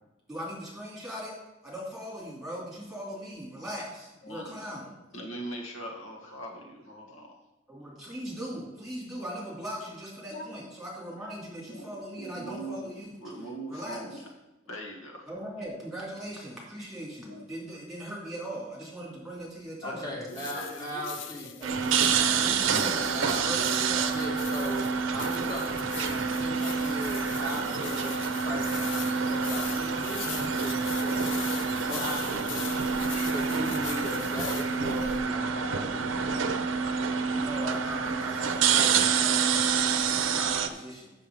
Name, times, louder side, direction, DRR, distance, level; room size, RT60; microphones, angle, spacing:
voice 1, 0.3-1.3 1.6-4.9 7.7-14.2 15.3-20.0 21.6-23.0 23.4-24.1 37.3-39.7 40.1-41.1, equal, ahead, -5 dB, 2.7 m, -39 dB
voice 2, 4.2-4.6 5.1-7.4 10.3-10.6 11.7-12.9 13.2-14.2 14.7-15.3 17.3-17.4 19.8-21.5 22.9-23.9, right 1 dB, 85° left, 0 dB, 1.6 m, -41 dB
voice 3, 19.8-21.5 23.1-23.5 24.1-32.8 33.3-36.5, equal, 20° left, -3 dB, 1.9 m, -38 dB
sound 1, 20.3-35.2, left 9 dB, 60° left, 0.6 m, -42 dB
sound 2, 21.6-40.7, right 6 dB, 75° right, 0.6 m, -27 dB
7.5 x 6.8 x 5.2 m, 1.0 s
head